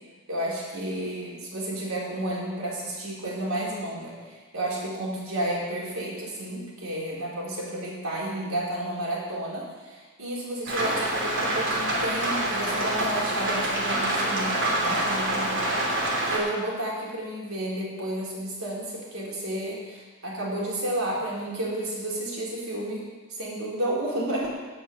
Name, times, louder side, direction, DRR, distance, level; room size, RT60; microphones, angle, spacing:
voice 1, 0.3-24.5, right 1 dB, 80° right, -5 dB, 3.7 m, -32 dB
Rain, 10.7-16.4, right 1 dB, 55° right, 2.8 m, -26 dB
16.0 x 5.6 x 6.8 m, 1.3 s
head